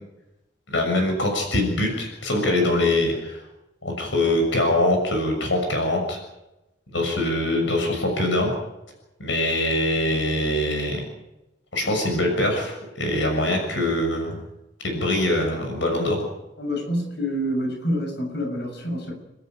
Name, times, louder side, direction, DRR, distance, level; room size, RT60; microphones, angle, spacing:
voice 1, 0.7-3.4 3.8-6.2 6.9-8.5 9.2-11.0 11.7-14.4 14.8-16.2, left 1 dB, 85° left, 3 dB, 6.4 m, -23 dB
voice 2, 16.6-19.1, equal, 60° left, 1 dB, 7.1 m, -27 dB
29.5 x 13.5 x 9.1 m, 0.96 s
head